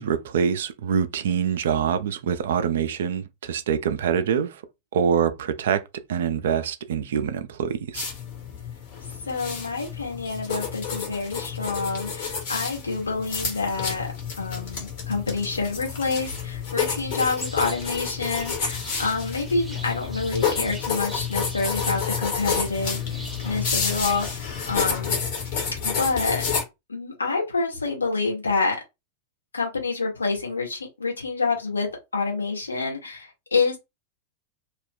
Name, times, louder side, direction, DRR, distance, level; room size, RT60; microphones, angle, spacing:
voice 1, 0.0-4.6 4.9-8.1, right 7 dB, 60° right, 0.4 m, -25 dB
sound 1, 7.9-26.6, left 6 dB, 50° left, 1.2 m, -30 dB
voice 2, 9.3-14.1 14.4-25.1 25.8-26.4 26.9-28.8 29.5-33.8, left 4 dB, 75° left, 1.1 m, -27 dB
sound 2, 16.9-24.4, right 1 dB, ahead, 0.8 m, -42 dB
2.4 x 2.1 x 3.6 m
figure-of-eight pair, 90°, 0 cm